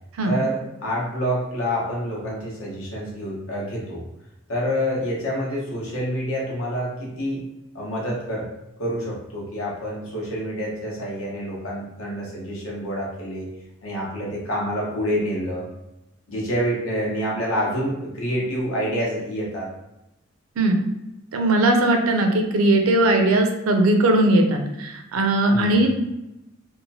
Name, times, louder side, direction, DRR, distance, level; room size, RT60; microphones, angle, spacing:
voice 1, 0.2-4.0 4.5-7.4 7.7-8.5 8.8-13.5 13.8-15.7 16.3-19.7 25.5-25.8, equal, 80° left, -4 dB, 1.0 m, -27 dB
voice 2, 21.3-26.0, right 1 dB, 80° right, 4 dB, 0.5 m, -19 dB
2.9 x 2.1 x 2.7 m, 0.91 s
head